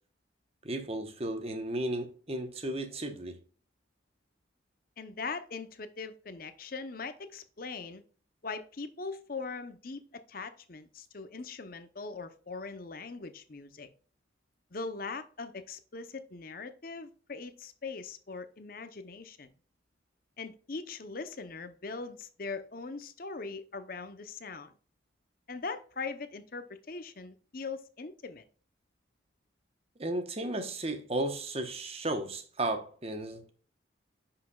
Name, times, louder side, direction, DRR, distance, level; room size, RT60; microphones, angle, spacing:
voice 1, 0.6-3.4 30.0-33.5, right 1 dB, 30° right, 1.1 m, -34 dB
voice 2, 5.0-8.0 8.4-13.9 14.7-19.5 20.4-24.7 25.5-28.4, left 4 dB, 50° left, 0.7 m, -41 dB
9.9 x 5.8 x 2.3 m
head